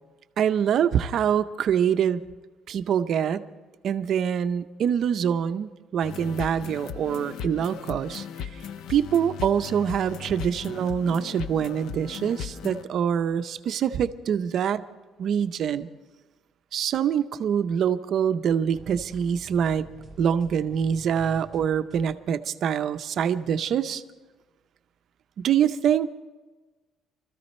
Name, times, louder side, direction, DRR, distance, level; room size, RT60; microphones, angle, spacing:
voice 1, 0.4-2.2 2.7-3.5 3.8-8.6 8.9-14.9 15.2-15.9 16.7-19.9 20.2-24.0 25.4-26.1, right 8 dB, 50° right, 11 dB, 0.6 m, -25 dB
sound 1, 6.0-12.8, left 8 dB, 70° left, 0.5 m, -37 dB
sound 2, 18.7-22.5, right 2 dB, 5° right, 1.9 m, -48 dB
24.0 x 14.0 x 4.3 m, 1.3 s
cardioid pair, 155°, 0 cm